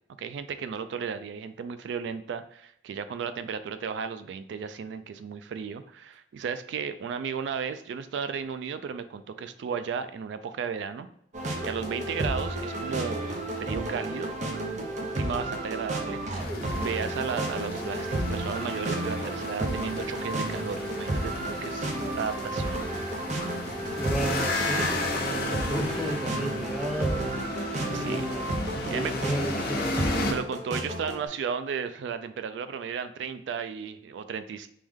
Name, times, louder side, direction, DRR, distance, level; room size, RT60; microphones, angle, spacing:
voice 1, 0.2-11.1 11.6-14.3 14.7-22.9 27.9-28.3 28.9-29.1 30.2-34.7, right 6 dB, 85° right, 11 dB, 0.3 m, -34 dB
sound 1, 11.3-31.2, right 1 dB, 45° right, 0.6 m, -32 dB
sound 2, 16.4-30.3, left 2 dB, 55° left, 0.8 m, -34 dB
voice 2, 24.0-27.2 27.8-28.5 28.7-29.9 30.2-30.4, right 1 dB, ahead, 2 dB, 0.5 m, -33 dB
3.4 x 3.1 x 3.5 m, 0.71 s
head